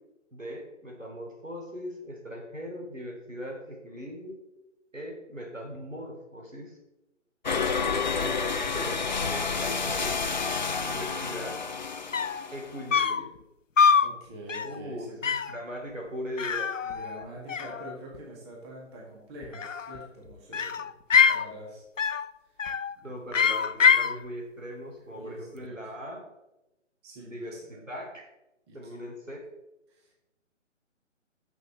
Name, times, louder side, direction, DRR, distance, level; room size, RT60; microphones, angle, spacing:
voice 1, 0.3-4.4 4.9-6.8 8.2-9.0 9.3-10.1 10.8-11.6 12.5-13.3 14.6-16.7 23.0-26.2 27.2-28.3 28.7-29.4, equal, 85° right, 1 dB, 3.3 m, -39 dB
sound 1, 7.5-13.0, left 5 dB, 35° left, 0.6 m, -30 dB
voice 2, 10.7-11.0 14.0-15.2 16.8-20.9 21.3-21.8 23.0-23.4 25.2-25.8 27.0-27.8 28.7-29.1 29.9-30.2, right 1 dB, 20° right, -2 dB, 2.1 m, -45 dB
sound 2, 11.8-11.9 12.1-12.5 12.9-13.3 13.8-14.1 14.5-14.8 15.2-15.6 16.4-17.2 17.5-18.2 19.4-20.1 20.5-21.5 22.0-22.3 22.6-22.9 23.3-24.1, left 6 dB, 80° left, 0.6 m, -24 dB
13.0 x 6.2 x 4.2 m, 0.96 s
figure-of-eight pair, 140°, 38 cm